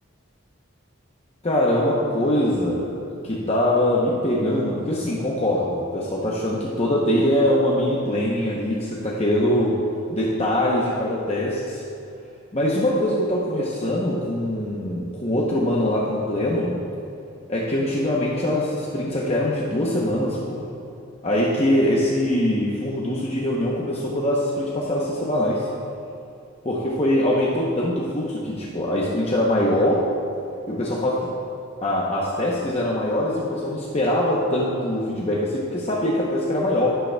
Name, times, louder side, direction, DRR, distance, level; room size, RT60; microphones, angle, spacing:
voice 1, 1.4-2.9 3.2-9.7 10.1-11.8 12.5-16.8 17.5-20.7 21.2-25.7 26.6-30.1 30.7-31.3 31.8-36.9, left 1 dB, 30° left, -4 dB, 0.8 m, -23 dB
15.0 x 6.7 x 2.3 m, 2.6 s
head